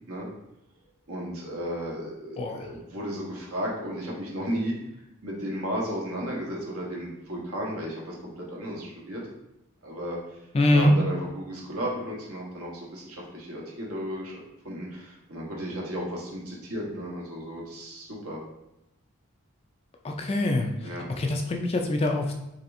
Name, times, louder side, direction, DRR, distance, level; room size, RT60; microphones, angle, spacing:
voice 1, 1.1-4.8 5.2-9.2 9.8-10.2 10.7-14.4 14.6-18.4 20.8-21.1, equal, 85° right, -3 dB, 1.2 m, -34 dB
voice 2, 2.4-2.7 10.5-10.9 20.0-20.7 21.2-22.3, left 1 dB, 25° left, 3 dB, 0.3 m, -24 dB
4.1 x 3.3 x 2.6 m, 0.88 s
head